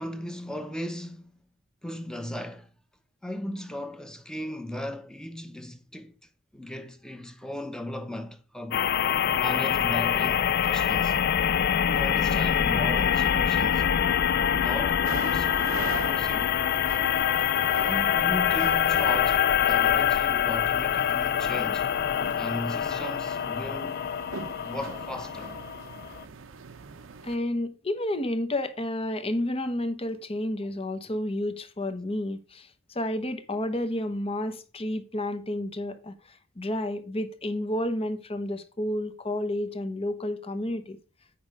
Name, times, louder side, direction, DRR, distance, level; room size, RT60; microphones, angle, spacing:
voice 1, 0.0-1.4 1.8-2.7 3.2-6.1 6.5-8.8 9.3-11.2 11.9-13.8 14.5-16.5 17.9-21.9 22.4-24.0 24.6-25.5, left 1 dB, 5° left, 0.9 m, -37 dB
sound 1, 8.7-26.2, left 9 dB, 50° left, 0.4 m, -25 dB
sound 2, 15.0-27.4, right 4 dB, 75° right, 0.7 m, -42 dB
voice 2, 27.2-32.7 32.9-36.1 36.6-41.0, left 1 dB, 30° left, 0.9 m, -30 dB
8.7 x 5.3 x 4.8 m
head